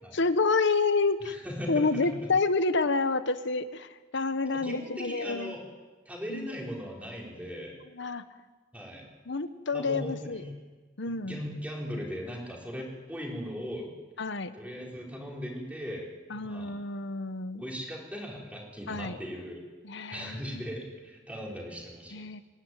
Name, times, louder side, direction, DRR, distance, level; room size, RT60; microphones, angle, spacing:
voice 1, 0.1-1.3 1.7-5.5 6.3-6.5 7.9-8.2 9.3-10.4 11.0-11.4 14.2-14.5 16.3-17.6 18.9-19.2 19.8-20.6 22.1-22.4, left 3 dB, 65° left, 12 dB, 1.1 m, -29 dB
voice 2, 1.2-2.3 4.5-5.6 6.0-7.7 8.7-9.1 9.7-10.5 11.2-13.9 14.5-16.7 17.6-19.7 20.1-22.3, equal, 5° right, -2 dB, 4.6 m, -38 dB
25.0 x 11.5 x 9.8 m, 1.3 s
head